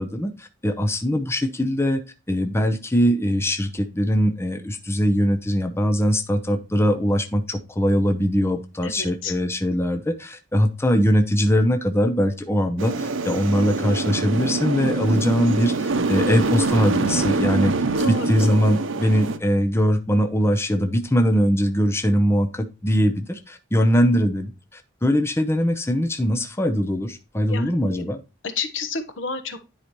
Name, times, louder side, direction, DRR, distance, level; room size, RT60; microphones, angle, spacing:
voice 1, 0.0-2.0 2.3-17.7 18.1-28.2, equal, 15° left, 6 dB, 0.7 m, -21 dB
voice 2, 8.8-9.3 18.0-18.3 27.5-28.0 28.4-29.7, left 4 dB, 70° left, 10 dB, 1.1 m, -31 dB
sound 1, 12.8-19.4, right 3 dB, 80° right, 0.7 m, -24 dB
9.9 x 4.9 x 3.0 m, 0.30 s
head